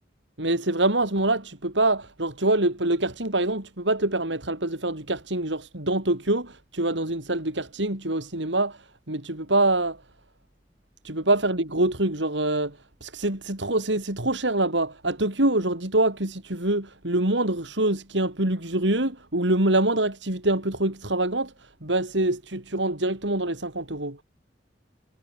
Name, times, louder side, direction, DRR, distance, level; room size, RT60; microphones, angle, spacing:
voice 1, 0.4-10.0 11.0-24.2, right 2 dB, 75° right, 4.5 m, -25 dB
head